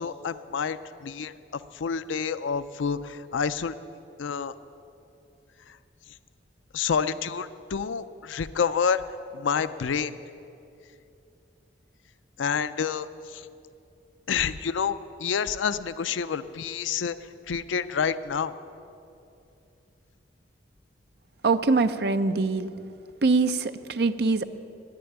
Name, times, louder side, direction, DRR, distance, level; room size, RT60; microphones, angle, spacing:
voice 1, 0.0-1.3 1.7-3.8 4.2-4.5 6.7-9.0 9.3-10.1 12.4-13.1 13.3-13.5 14.3-17.2 17.5-18.5, left 6 dB, 85° left, 14 dB, 0.4 m, -28 dB
voice 2, 21.4-22.7 23.2-24.4, right 3 dB, 55° right, 10 dB, 0.5 m, -23 dB
10.5 x 10.5 x 10.0 m, 2.7 s
head